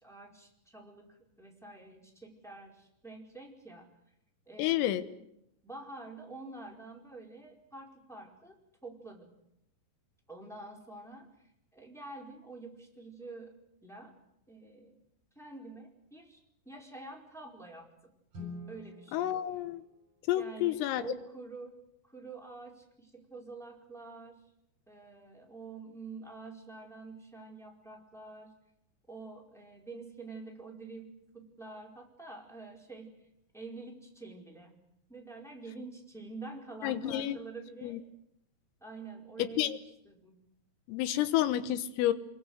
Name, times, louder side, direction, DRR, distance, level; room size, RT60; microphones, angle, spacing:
voice 1, 0.0-3.9 4.5-5.1 5.6-9.3 10.3-11.3 11.7-14.1 14.5-15.0 15.3-18.1 18.7-19.3 20.3-21.8 22.0-24.4 24.9-28.5 29.1-33.2 33.5-34.8 35.1-38.0 38.8-39.7 40.0-40.4, right 3 dB, ahead, -1 dB, 3.9 m, -47 dB
voice 2, 4.6-5.0 19.1-19.8 20.3-21.0 36.8-37.4 37.8-38.0 39.6-39.8 40.9-42.1, left 13 dB, 85° left, 12 dB, 3.9 m, -30 dB
Guitar, 18.3-20.9, left 2 dB, 45° right, 8.5 m, -48 dB
26.0 x 22.5 x 8.0 m, 0.79 s
omnidirectional pair, 5.9 m